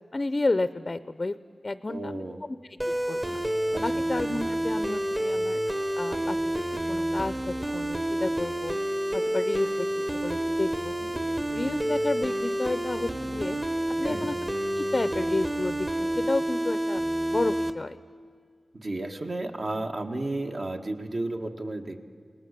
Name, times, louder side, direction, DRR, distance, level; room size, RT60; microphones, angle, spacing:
voice 1, 0.1-1.4 1.6-2.2 3.1-3.4 3.8-5.6 5.9-8.8 9.1-9.9 10.2-11.1 11.5-13.6 14.0-14.5 14.8-17.0 17.3-18.0, left 2 dB, 35° left, 13 dB, 0.6 m, -31 dB
voice 2, 1.9-2.4 3.7-4.0 14.0-14.3 18.7-22.0, right 2 dB, 55° right, 3 dB, 1.8 m, -33 dB
sound 1, 2.8-17.7, right 1 dB, 20° right, 1.1 m, -29 dB
29.5 x 19.5 x 6.8 m, 2.2 s
wide cardioid pair, 75°, 0 cm